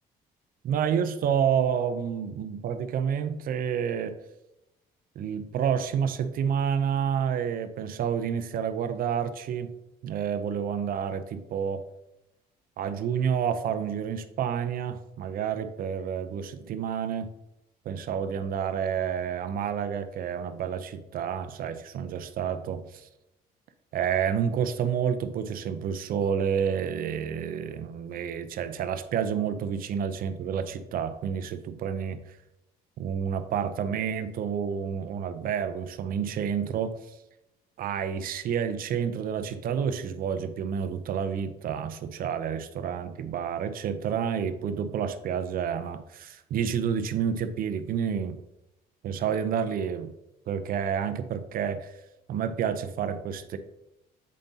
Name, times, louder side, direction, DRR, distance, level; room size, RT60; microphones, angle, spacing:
voice 1, 0.6-4.2 5.2-9.7 10.0-11.8 12.8-17.3 17.9-23.1 23.9-32.2 33.0-36.9 37.8-48.4 49.0-50.1 50.5-51.9 52.3-53.6, right 8 dB, 60° right, 11 dB, 0.5 m, -29 dB
7.5 x 5.3 x 2.7 m, 0.89 s
cardioid pair, 110°, 17 cm